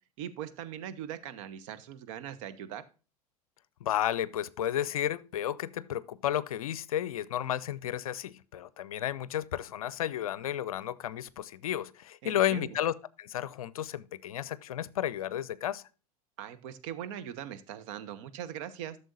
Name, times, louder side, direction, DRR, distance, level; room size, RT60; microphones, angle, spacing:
voice 1, 0.2-2.8 12.2-12.8 16.4-19.0, right 10 dB, 55° right, 1.0 m, -40 dB
voice 2, 3.8-15.8, left 11 dB, 65° left, 0.5 m, -32 dB
12.5 x 6.8 x 2.6 m
figure-of-eight pair, 80°, 19 cm